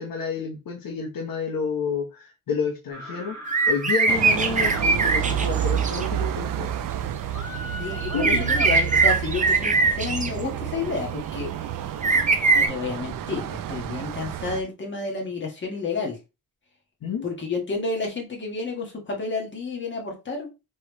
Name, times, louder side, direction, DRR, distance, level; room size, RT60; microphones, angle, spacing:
voice 1, 0.0-3.4 3.7-6.7 8.1-8.4 17.0-17.2, left 5 dB, 80° left, 1 dB, 1.2 m, -29 dB
sound 1, 2.9-4.8 7.3-9.2, equal, 10° left, 1.8 m, -39 dB
sound 2, 3.5-6.1 8.0-10.3 12.0-12.7, right 4 dB, 25° right, 0.6 m, -21 dB
sound 3, 4.1-14.6, right 10 dB, 75° right, 0.5 m, -30 dB
voice 2, 7.8-11.5 12.5-16.2 17.2-20.5, left 4 dB, 35° left, 0 dB, 1.7 m, -30 dB
4.4 x 3.3 x 3.2 m, 0.27 s
wide cardioid pair, 155°, 33 cm